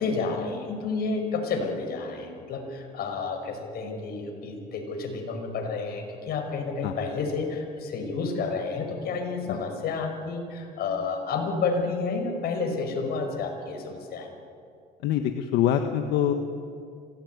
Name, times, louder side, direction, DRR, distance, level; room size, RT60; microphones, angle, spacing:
voice 1, 0.0-14.3, left 4 dB, 65° left, 4 dB, 5.5 m, -30 dB
voice 2, 15.0-16.3, left 10 dB, 90° left, 6 dB, 1.4 m, -24 dB
26.0 x 18.5 x 9.6 m, 2.4 s
cardioid pair, 110°, 17 cm